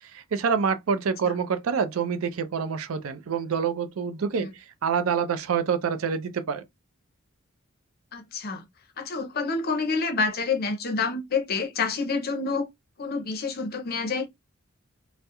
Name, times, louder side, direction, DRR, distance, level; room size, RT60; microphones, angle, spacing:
voice 1, 0.1-4.5 4.8-6.6, right 6 dB, 75° right, 0.4 m, -26 dB
voice 2, 8.1-8.6 9.0-12.7 13.0-14.3, left 4 dB, 45° left, 0.5 m, -28 dB
2.3 x 2.0 x 2.8 m
head